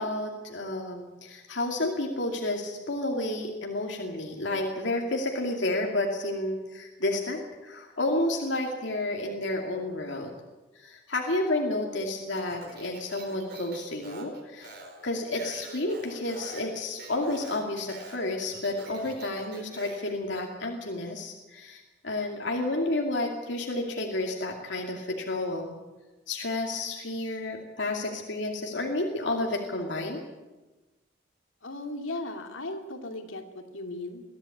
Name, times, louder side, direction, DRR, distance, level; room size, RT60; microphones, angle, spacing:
voice 1, 0.0-10.3 10.8-14.7 15.0-25.7 26.3-30.2, left 2 dB, 70° left, 0 dB, 2.5 m, -31 dB
Speech, 12.3-20.1, right 2 dB, 50° right, 4.7 m, -46 dB
voice 2, 31.6-34.2, left 2 dB, 90° left, 4 dB, 2.7 m, -37 dB
22.5 x 15.0 x 8.7 m, 1.2 s
head